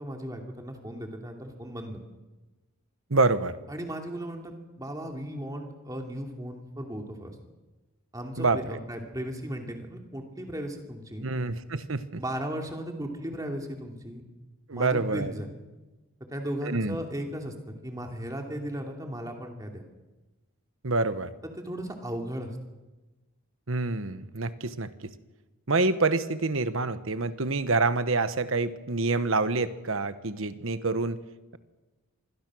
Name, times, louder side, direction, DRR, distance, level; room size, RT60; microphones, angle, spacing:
voice 1, 0.0-2.0 3.7-4.5 4.8-7.3 8.1-11.3 12.2-14.2 14.7-15.5 16.3-17.5 17.8-19.8 21.4-22.6, equal, 15° right, 2 dB, 2.8 m, -36 dB
voice 2, 3.1-3.5 8.4-8.6 11.2-12.2 14.7-15.3 16.6-17.0 20.8-21.3 23.7-25.1 25.7-31.2, right 3 dB, 65° right, 12 dB, 1.2 m, -27 dB
25.5 x 21.5 x 6.3 m, 1.2 s
head